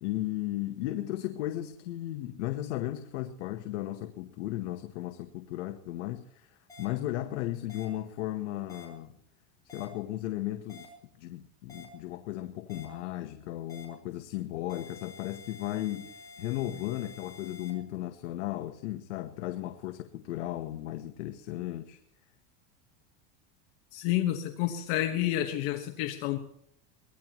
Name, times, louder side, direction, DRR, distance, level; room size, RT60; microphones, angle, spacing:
voice 1, 0.0-9.1 9.7-22.0, left 14 dB, 75° left, 7 dB, 1.2 m, -35 dB
sound 1, 6.7-6.8 7.7-7.8 8.7-8.8 9.7-9.8 10.7-10.8 11.7-11.8 12.7-12.8 13.7-13.8 14.7-17.7, left 3 dB, 10° left, 4.3 m, -49 dB
voice 2, 23.9-26.4, left 13 dB, 50° left, 5 dB, 1.4 m, -29 dB
23.5 x 18.5 x 3.0 m, 0.70 s
supercardioid pair, 165°, 36 cm